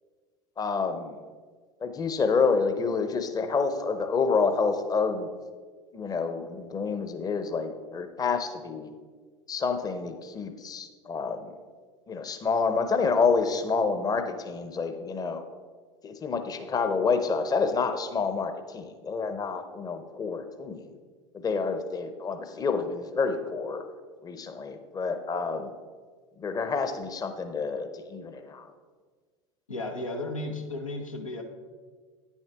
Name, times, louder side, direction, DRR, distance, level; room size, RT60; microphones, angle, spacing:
voice 1, 0.6-1.2 1.8-5.3 5.9-8.9 9.5-11.5 12.1-15.4 16.0-20.9 21.3-23.8 24.2-25.7 26.4-28.7, left 4 dB, 20° left, 8 dB, 0.8 m, -28 dB
voice 2, 29.7-31.4, left 2 dB, 90° left, 2 dB, 1.0 m, -34 dB
9.5 x 7.2 x 3.5 m, 1.5 s
figure-of-eight pair, 75°, 17 cm